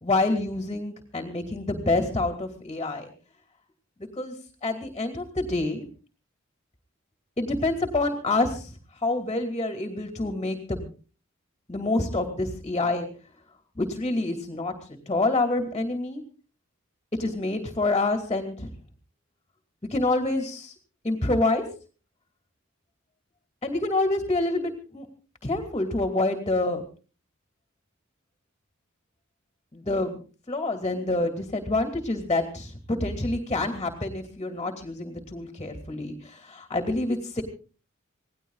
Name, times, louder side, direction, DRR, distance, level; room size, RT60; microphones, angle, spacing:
voice 1, 0.0-3.1 4.0-4.3 4.6-5.9 7.4-10.9 11.7-13.1 13.8-16.2 17.2-18.7 19.9-20.7 21.0-21.6 23.6-25.1 25.4-26.8 29.7-30.2 30.5-37.4, left 2 dB, 25° left, 5 dB, 2.5 m, -27 dB
27.0 x 18.0 x 2.4 m, 0.36 s
head